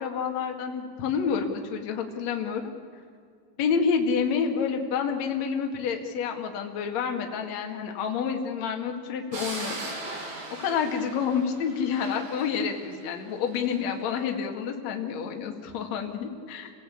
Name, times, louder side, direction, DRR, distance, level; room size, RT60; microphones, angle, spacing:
voice 1, 0.0-2.6 3.6-9.8 10.6-16.7, left 6 dB, 50° left, 3 dB, 2.6 m, -28 dB
sound 1, 9.3-13.8, right 2 dB, 45° right, 5.0 m, -39 dB
29.0 x 17.5 x 8.5 m, 2.2 s
omnidirectional pair, 5.1 m